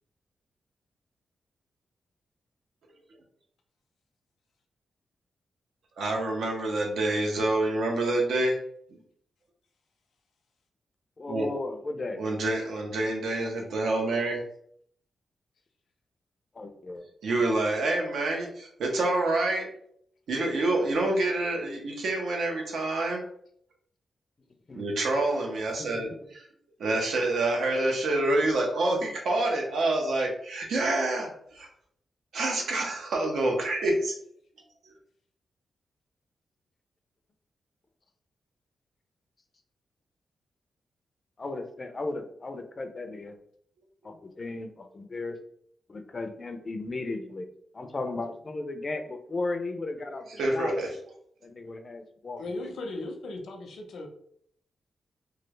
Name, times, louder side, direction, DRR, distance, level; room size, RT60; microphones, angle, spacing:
voice 1, 6.0-8.6 11.3-11.5 12.2-14.4 17.2-19.7 20.3-23.2 24.7-26.4 26.8-31.7 32.3-34.1 50.4-50.9, right 2 dB, 80° right, 0 dB, 0.8 m, -27 dB
voice 2, 11.2-12.2 16.5-17.1 24.7-24.9 25.8-26.1 41.4-43.4 44.0-45.4 45.9-47.5 47.7-50.9 51.4-52.7, left 2 dB, 30° left, 6 dB, 0.4 m, -35 dB
voice 3, 52.4-54.1, left 2 dB, 80° left, 3 dB, 0.6 m, -37 dB
3.2 x 2.3 x 3.1 m, 0.65 s
wide cardioid pair, 160°, 0 cm